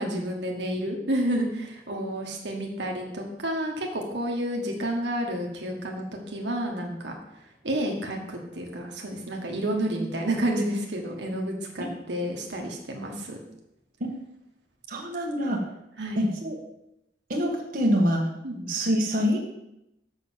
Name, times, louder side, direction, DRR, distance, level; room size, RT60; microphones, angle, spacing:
voice 1, 0.0-7.1 7.6-13.4 16.0-16.3 18.4-18.7, right 1 dB, 80° right, 1 dB, 1.5 m, -30 dB
voice 2, 14.9-15.7 16.1-16.6 17.3-18.3 18.7-19.4, equal, 50° right, 0 dB, 1.5 m, -25 dB
6.6 x 6.1 x 7.3 m, 0.85 s
head